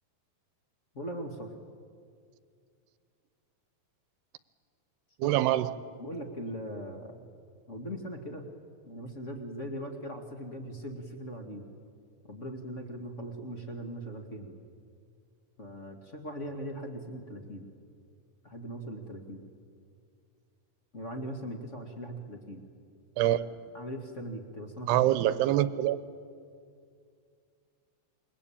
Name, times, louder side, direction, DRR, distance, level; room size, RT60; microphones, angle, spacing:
voice 1, 0.9-1.5 5.2-5.3 6.0-7.2 7.7-8.5 8.8-11.6 12.3-14.6 15.6-17.7 18.4-19.4 20.9-22.6 23.7-25.6, equal, 35° left, 3 dB, 1.1 m, -40 dB
voice 2, 5.2-5.7 23.2-23.5 24.9-26.0, right 13 dB, 80° right, 14 dB, 2.7 m, -25 dB
28.0 x 23.0 x 8.8 m, 2.3 s
omnidirectional pair, 5.0 m